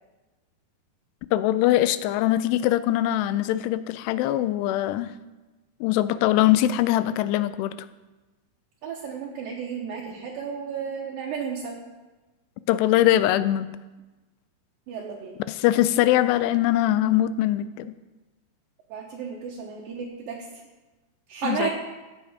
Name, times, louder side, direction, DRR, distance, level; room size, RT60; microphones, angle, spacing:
voice 1, 1.3-5.1 5.8-7.7 12.7-13.7 15.5-18.0 21.4-21.7, left 14 dB, 90° left, 14 dB, 2.7 m, -22 dB
voice 2, 8.8-11.8 14.9-15.4 18.9-20.4 21.3-21.7, right 6 dB, 70° right, -3 dB, 2.5 m, -33 dB
16.0 x 7.0 x 5.0 m, 1.2 s
omnidirectional pair, 4.7 m